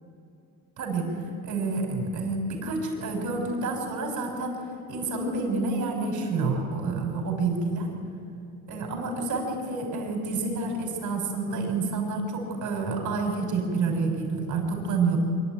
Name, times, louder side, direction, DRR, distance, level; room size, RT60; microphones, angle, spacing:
voice 1, 0.8-1.1 1.4-4.6 4.9-7.9 8.7-15.2, right 3 dB, 55° right, 1 dB, 6.2 m, -28 dB
25.0 x 13.0 x 9.4 m, 2.5 s
cardioid pair, 90°, 35 cm